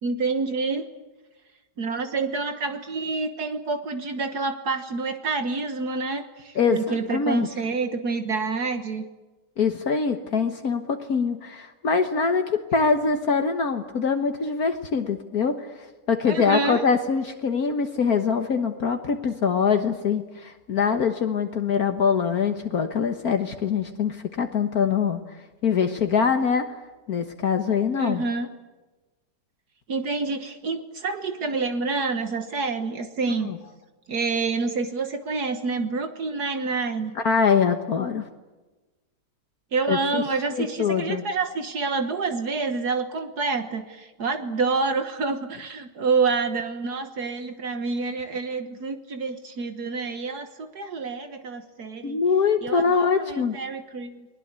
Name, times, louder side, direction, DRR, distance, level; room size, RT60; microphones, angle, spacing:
voice 1, 0.0-0.8 1.8-9.0 16.3-16.9 28.0-28.5 29.9-33.5 34.1-37.1 39.7-52.2 52.6-54.3, right 4 dB, 65° right, 8 dB, 1.9 m, -28 dB
voice 2, 6.5-7.5 9.6-25.2 25.6-26.6 27.1-28.2 33.4-33.6 37.2-38.3 39.9-40.2 40.5-41.2 52.0-53.6, left 5 dB, 60° left, 6 dB, 1.8 m, -23 dB
30.0 x 21.0 x 8.2 m, 1.2 s
omnidirectional pair, 1.8 m